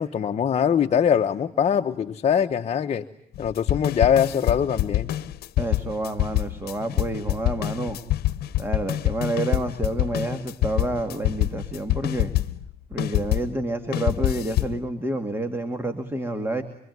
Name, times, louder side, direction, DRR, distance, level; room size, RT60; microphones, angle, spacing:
voice 1, 0.0-3.0 3.4-5.1, left 8 dB, 40° left, 5 dB, 1.1 m, -22 dB
sound 1, 3.3-13.5 13.9-14.8, left 15 dB, 65° left, 1.1 m, -25 dB
voice 2, 5.6-8.0 8.6-12.3 12.9-16.6, right 1 dB, 15° right, 8 dB, 2.3 m, -29 dB
25.5 x 25.0 x 9.5 m, 0.69 s
cardioid pair, 110°, 17 cm